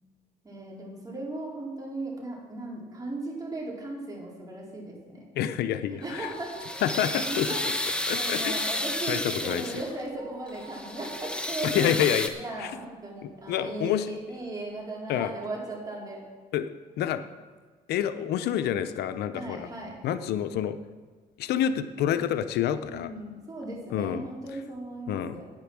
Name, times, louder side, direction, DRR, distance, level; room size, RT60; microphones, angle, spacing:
voice 1, 0.4-5.2 6.0-7.6 7.9-11.9 12.4-16.2 19.3-20.0 22.9-25.5, right 2 dB, 20° right, -3 dB, 4.2 m, -37 dB
voice 2, 5.3-6.3 6.8-7.5 8.1-8.7 9.1-9.6 11.6-12.3 12.6-12.7 13.5-14.1 15.1-15.3 16.5-16.7 17.0-17.2 17.9-19.7 20.0-20.8 21.4-23.1 23.9-24.2 25.1-25.4, left 10 dB, 75° left, 11 dB, 0.7 m, -28 dB
sound 1, 6.1-10.0 10.5-12.3, left 1 dB, 5° left, 1.1 m, -32 dB
sound 2, 6.1-7.6 7.9-8.0 8.5-12.9 13.4-13.5 14.3-14.4 14.6-14.7, right 4 dB, 45° right, 2.6 m, -50 dB
10.5 x 9.6 x 6.1 m, 1.5 s
cardioid pair, 110°, 17 cm